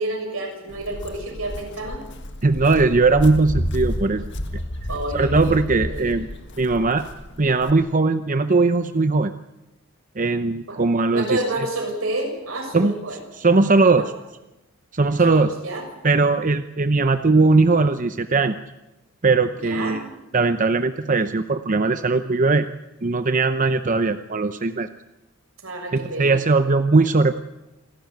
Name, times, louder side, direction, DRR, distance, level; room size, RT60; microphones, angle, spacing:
voice 1, 0.0-2.0 4.9-6.1 10.7-10.8 11.1-13.2 13.9-14.1 15.2-15.9 19.6-20.0 25.6-26.4, right 1 dB, 85° right, 2 dB, 6.9 m, -29 dB
Walk footsteps, 0.7-7.7, equal, 60° left, 1.7 m, -31 dB
voice 2, 2.4-4.3 5.1-6.3 6.6-7.1 7.4-9.3 10.2-11.4 12.7-13.0 13.4-14.1 14.9-15.5 16.0-18.6 19.2-20.0 20.3-22.7 23.0-24.9 25.9-27.4, right 3 dB, 40° right, 10 dB, 0.7 m, -19 dB
27.5 x 12.5 x 9.3 m, 0.99 s
head